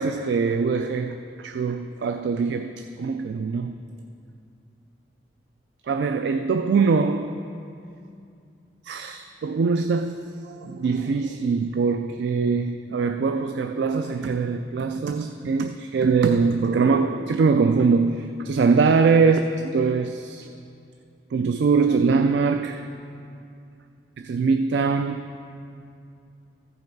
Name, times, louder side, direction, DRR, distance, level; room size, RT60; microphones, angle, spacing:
voice 1, 0.0-2.7 3.0-3.8 5.9-7.3 8.9-19.4 19.7-20.5 21.3-22.8 24.2-25.2, right 5 dB, 70° right, 8 dB, 0.3 m, -22 dB
14.0 x 5.4 x 4.6 m, 2.5 s
head